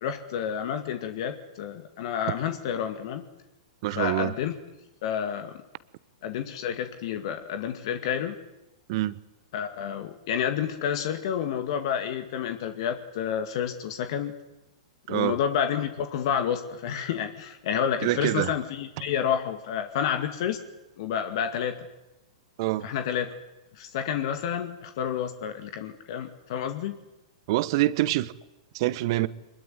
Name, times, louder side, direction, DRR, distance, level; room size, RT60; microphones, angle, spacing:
voice 1, 0.0-3.2 4.0-4.5 5.0-5.5 6.2-8.3 9.5-14.3 15.1-20.6 21.0-21.9 22.8-23.3 23.8-27.0, left 8 dB, 55° left, 2.2 m, -29 dB
voice 2, 3.8-4.3 8.9-9.2 15.1-15.4 18.0-18.6 22.6-22.9 27.5-28.3 28.7-29.3, right 17 dB, 50° right, 1.0 m, -25 dB
24.5 x 21.5 x 9.7 m
hypercardioid pair, 110°, 3 cm